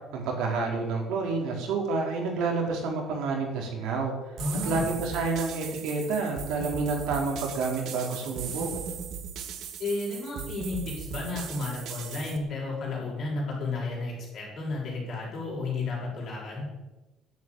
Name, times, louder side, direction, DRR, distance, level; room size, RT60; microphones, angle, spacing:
voice 1, 0.1-4.3 4.6-8.7, right 4 dB, 70° right, 1 dB, 4.2 m, -29 dB
voice 2, 4.4-4.9 9.8-16.6, left 3 dB, 35° left, -4 dB, 6.7 m, -32 dB
sound 1, 4.4-12.4, right 7 dB, 50° right, 1.7 m, -38 dB
11.0 x 9.5 x 9.3 m, 1.1 s
cardioid pair, 175°, 0 cm